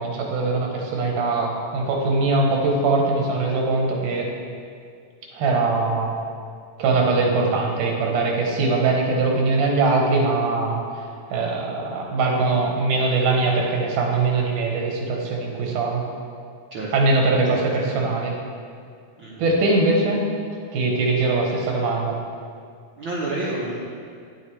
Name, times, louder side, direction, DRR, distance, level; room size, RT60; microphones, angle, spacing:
voice 1, 0.0-4.3 5.3-6.1 6.8-10.8 11.3-16.0 16.9-18.3 19.4-20.2 20.7-22.1, right 3 dB, 85° right, 0 dB, 2.7 m, -21 dB
voice 2, 23.0-24.0, right 2 dB, 65° right, -7 dB, 1.2 m, -29 dB
9.6 x 8.0 x 3.3 m, 2.2 s
omnidirectional pair, 3.6 m